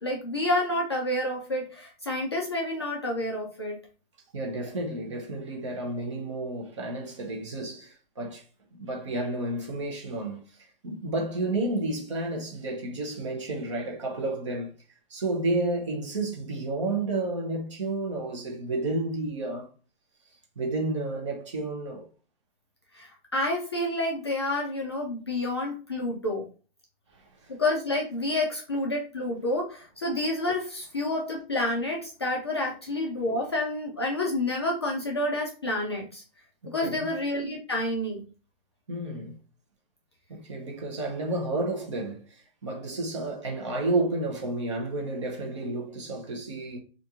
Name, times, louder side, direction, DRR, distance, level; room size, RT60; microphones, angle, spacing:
voice 1, 0.0-3.8 22.9-26.4 27.5-36.2 36.7-38.2, left 1 dB, 30° left, 0.4 m, -29 dB
voice 2, 4.3-8.4 8.7-10.5 10.8-14.7 15.1-19.7 20.6-22.0 27.4-27.5 36.6-37.1 38.9-39.4 40.3-46.8, right 2 dB, 30° right, 0.6 m, -31 dB
2.8 x 2.5 x 3.5 m
hypercardioid pair, 180°, 30 cm